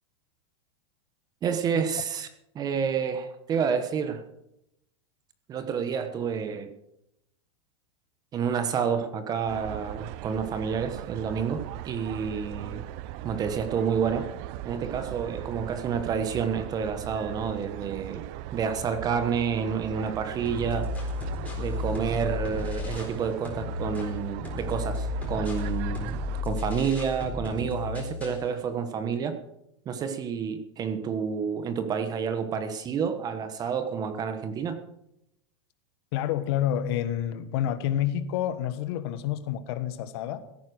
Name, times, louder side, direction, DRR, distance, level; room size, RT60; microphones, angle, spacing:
voice 1, 1.4-2.3 2.5-4.2 5.5-6.7 8.3-12.9 13.2-14.3 14.6-18.2 18.5-20.9 21.6-29.4 29.8-34.8, right 6 dB, 25° right, 9 dB, 1.3 m, -29 dB
sound 1, 9.5-26.4, right 14 dB, 45° right, 0.6 m, -39 dB
sound 2, 20.5-23.2 23.5-28.5, left 4 dB, 10° left, 4.1 m, -33 dB
voice 2, 36.1-40.4, left 11 dB, 60° left, 12 dB, 1.5 m, -28 dB
16.5 x 9.6 x 6.4 m, 0.82 s
supercardioid pair, 145°, 15 cm